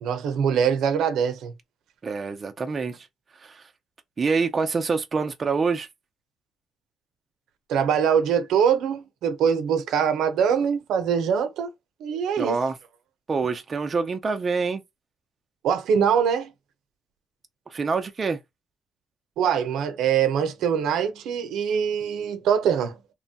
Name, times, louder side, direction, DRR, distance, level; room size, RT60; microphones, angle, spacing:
voice 1, 0.0-1.5 7.7-11.7 12.0-12.6 15.6-16.5 19.4-23.0, right 7 dB, 85° right, 0.6 m, -23 dB
voice 2, 2.0-3.1 3.4-3.6 4.2-5.9 12.4-12.7 13.3-14.8 17.7-18.4, right 4 dB, 35° right, 0.4 m, -26 dB
3.0 x 2.2 x 2.7 m
cardioid pair, 115°, 0 cm